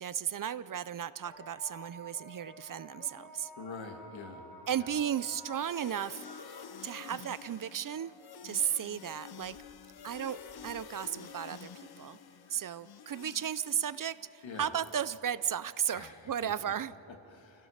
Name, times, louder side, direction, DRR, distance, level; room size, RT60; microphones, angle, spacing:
voice 1, 0.0-3.5 4.7-6.2 6.8-8.1 8.4-9.5 10.0-12.2 12.5-16.9, right 9 dB, 50° right, 16 dB, 0.4 m, -35 dB
sound 1, 1.2-8.6 9.4-10.9, right 1 dB, 20° left, 2.2 m, -52 dB
voice 2, 3.6-4.5 4.7-5.0 12.4-12.8 14.4-14.7 15.9-16.7 17.1-17.7, left 4 dB, 85° left, 4 dB, 2.1 m, -46 dB
sound 2, 5.5-14.6, left 7 dB, 55° left, 0.8 m, -49 dB
26.0 x 17.0 x 6.5 m, 2.9 s
wide cardioid pair, 175°, 45 cm